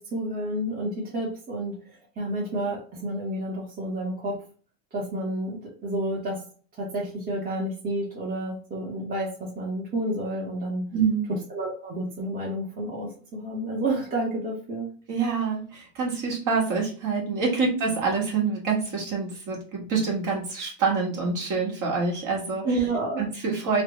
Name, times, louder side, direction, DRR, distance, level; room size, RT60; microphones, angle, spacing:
voice 1, 0.0-4.4 4.9-6.4 6.7-10.9 11.3-14.9 22.6-23.2, right 1 dB, 20° right, -4 dB, 1.2 m, -30 dB
voice 2, 10.9-11.3 15.1-22.6 23.2-23.8, right 5 dB, 40° right, -2 dB, 1.6 m, -26 dB
3.3 x 2.4 x 3.0 m, 0.41 s
supercardioid pair, 115°, 49 cm